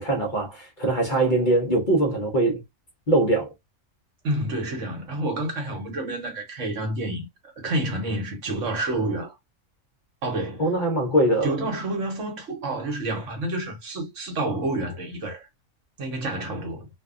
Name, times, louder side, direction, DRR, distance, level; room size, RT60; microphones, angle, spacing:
voice 1, 0.0-2.6 3.1-3.5 10.6-11.6, right 1 dB, 45° left, 0.8 m, -22 dB
voice 2, 4.2-7.3 7.6-9.3 10.2-10.7 11.4-15.5 16.0-16.9, right 1 dB, 60° right, 1.3 m, -29 dB
2.6 x 2.3 x 2.4 m
omnidirectional pair, 1.4 m